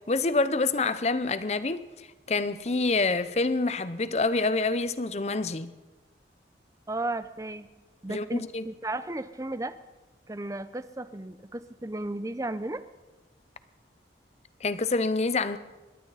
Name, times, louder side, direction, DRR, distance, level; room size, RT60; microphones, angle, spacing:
voice 1, 0.1-5.7 8.1-8.6 14.6-15.6, left 3 dB, 40° left, 0.7 m, -27 dB
voice 2, 6.9-7.7 8.0-9.7 10.3-12.8, right 2 dB, 20° right, 0.6 m, -34 dB
27.0 x 12.0 x 4.1 m
head